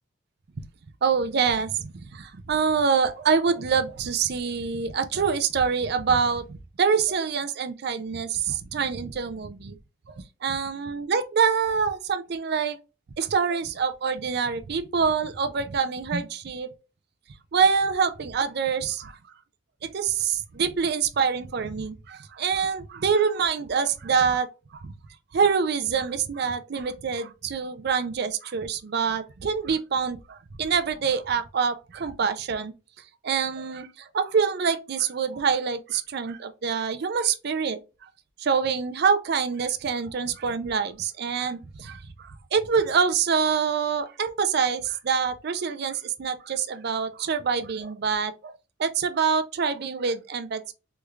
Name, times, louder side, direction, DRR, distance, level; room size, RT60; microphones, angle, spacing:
voice 1, 1.0-9.8 10.1-12.8 13.2-16.7 17.5-19.2 19.8-24.5 24.8-24.9 25.3-32.7 33.2-37.8 38.4-50.7, right 6 dB, 55° right, 0.4 m, -26 dB
3.4 x 3.1 x 2.3 m
head